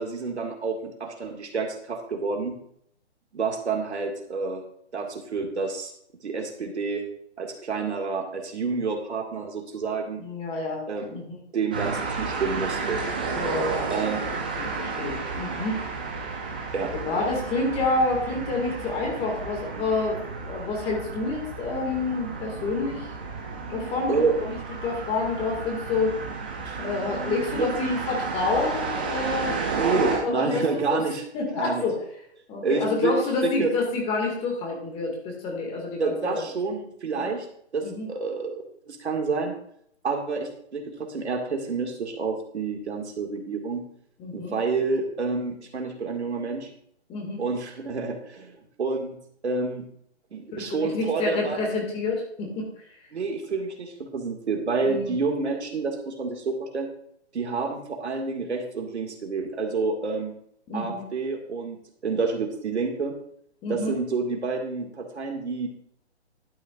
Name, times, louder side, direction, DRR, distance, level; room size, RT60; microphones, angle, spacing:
voice 1, 0.0-2.5 3.3-4.6 4.9-5.9 6.2-7.0 7.4-10.2 10.9-11.2 11.5-13.0 13.9-14.2 16.7-16.9 24.1-24.4 26.6-26.9 27.6-27.7 29.7-31.2 31.6-31.9 32.6-33.7 36.0-37.5 37.7-39.5 40.0-43.8 44.3-46.7 47.4-49.2 49.4-49.9 50.3-51.6 53.1-56.9 57.3-60.3 60.7-61.8 62.0-63.1 63.7-65.7, right 4 dB, 75° right, 2 dB, 2.0 m, -28 dB
voice 2, 10.2-10.8 11.1-11.3 13.3-13.8 14.6-15.8 17.1-23.1 23.7-24.6 24.8-26.2 26.8-30.6 30.9-31.0 31.3-32.0 32.5-36.4 37.1-37.3 37.8-38.1 44.2-44.5 47.1-47.4 50.5-52.7 54.9-55.1 60.7-61.0 63.6-63.9, left 3 dB, 15° left, 0 dB, 2.0 m, -28 dB
sound 1, 11.7-30.2, right 4 dB, 10° right, 0.4 m, -32 dB
12.0 x 8.9 x 2.5 m, 0.70 s
hypercardioid pair, 140°, 34 cm